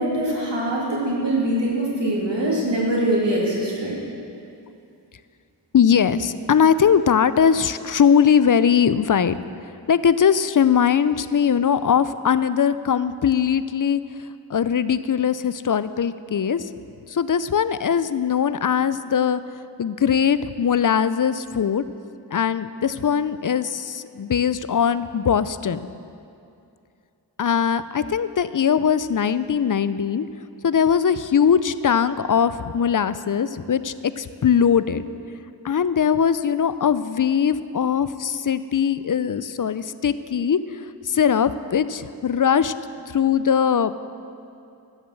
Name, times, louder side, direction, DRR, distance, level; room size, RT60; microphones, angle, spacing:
voice 1, 0.0-4.0, right 1 dB, 75° right, -5 dB, 2.9 m, -23 dB
voice 2, 5.7-9.4 9.9-14.0 14.5-16.6 17.1-19.4 19.8-21.8 22.3-25.9 27.4-30.3 30.6-35.4 35.6-40.6 41.1-42.7 43.1-43.9, left 7 dB, 45° left, 14 dB, 0.4 m, -20 dB
12.5 x 7.1 x 7.6 m, 2.6 s
wide cardioid pair, 60°, 44 cm